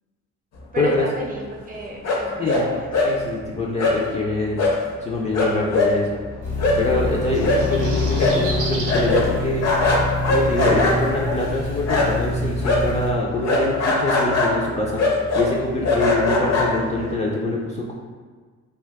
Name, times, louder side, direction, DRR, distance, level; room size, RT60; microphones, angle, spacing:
voice 1, 0.7-3.1 7.7-7.9, right 2 dB, 30° right, -1 dB, 0.6 m, -34 dB
sound 1, 2.0-2.6 2.9-3.1 3.8-4.0 4.6-4.8 5.1-5.2 5.3-12.3 12.6-17.1, left 2 dB, 60° left, 0.6 m, -22 dB
voice 2, 2.4-2.7 3.0-4.6 5.0-6.2 6.8-9.9 10.3-15.0 15.3-17.9, left 2 dB, 25° left, -3 dB, 0.3 m, -25 dB
sound 2, 6.4-13.1, left 1 dB, 75° left, 1.1 m, -27 dB
sound 3, 7.2-9.1 10.5-10.6, right 3 dB, 90° right, 0.6 m, -33 dB
2.5 x 2.2 x 3.4 m, 1.5 s
cardioid pair, 90°, 30 cm